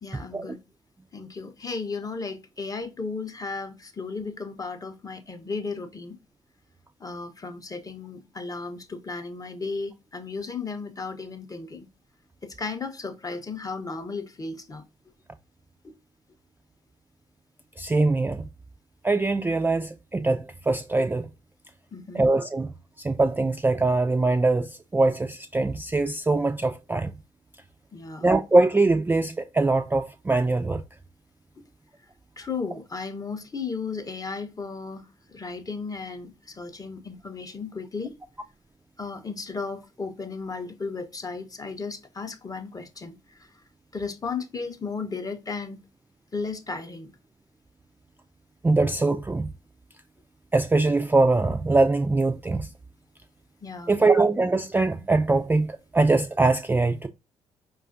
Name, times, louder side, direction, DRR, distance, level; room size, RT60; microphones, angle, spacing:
voice 1, 0.0-0.6 1.1-6.2 7.0-11.9 12.4-14.8 15.8-15.9 21.9-22.2 27.9-28.3 32.4-38.1 39.0-43.5 43.9-45.8 46.3-47.1 53.6-54.0, left 4 dB, 25° left, 0.6 m, -35 dB
voice 2, 17.8-18.5 19.0-21.3 22.1-22.7 23.0-27.1 28.2-30.8 48.6-49.5 50.5-52.7 53.9-57.1, right 3 dB, 15° right, 0.3 m, -22 dB
4.8 x 2.3 x 2.5 m
hypercardioid pair, 45°, 15 cm